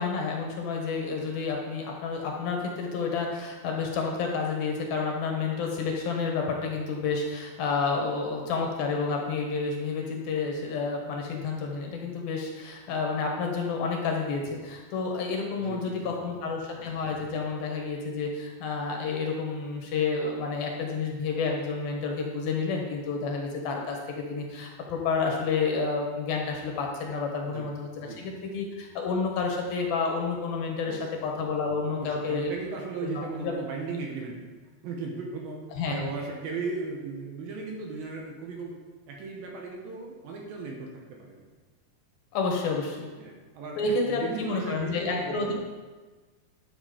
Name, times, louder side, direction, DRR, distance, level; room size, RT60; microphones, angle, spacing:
voice 1, 0.0-32.5 33.0-33.5 35.7-36.1 42.3-43.1 43.8-45.5, left 4 dB, 70° left, 1 dB, 2.8 m, -30 dB
voice 2, 15.6-16.3 16.8-16.9 27.5-27.7 28.0-28.2 30.9-31.2 31.9-34.4 34.8-38.8 39.1-41.5 43.2-45.5, right 4 dB, 70° right, 0 dB, 2.6 m, -37 dB
11.0 x 7.3 x 5.0 m, 1.3 s
omnidirectional pair, 4.9 m